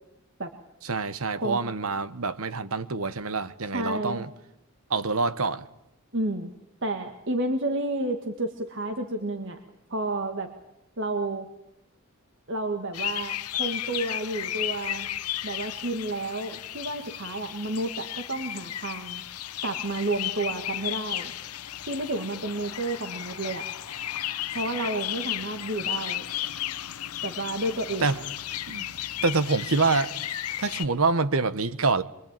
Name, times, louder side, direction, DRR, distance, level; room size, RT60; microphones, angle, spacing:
voice 1, 0.8-4.3 4.9-5.7 28.0-28.2 28.7-28.9 29.2-30.1 30.6-32.0, right 4 dB, 70° right, 1.2 m, -26 dB
voice 2, 3.7-4.2 6.1-6.5 6.8-9.6 9.9-10.5 11.0-11.5 12.5-15.1 15.4-19.2 19.6-21.3 21.9-23.6 24.5-26.2 27.2-28.0, right 2 dB, 55° right, 1.7 m, -31 dB
sound 1, 12.9-30.9, left 12 dB, 90° left, 0.9 m, -34 dB
23.5 x 23.5 x 9.0 m
head